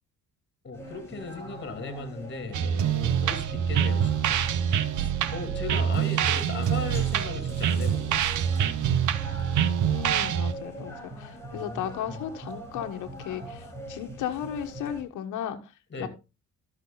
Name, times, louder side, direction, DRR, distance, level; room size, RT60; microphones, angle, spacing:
voice 1, 0.6-9.0 11.5-12.2 15.9-16.1, left 3 dB, 35° left, 3.0 m, -38 dB
sound 1, 0.7-15.0, right 1 dB, 10° left, 5.3 m, -42 dB
sound 2, 2.5-10.5, right 9 dB, 75° right, 1.0 m, -25 dB
voice 2, 9.8-16.1, left 9 dB, 85° left, 1.3 m, -35 dB
13.0 x 6.4 x 4.0 m
cardioid pair, 90°, 30 cm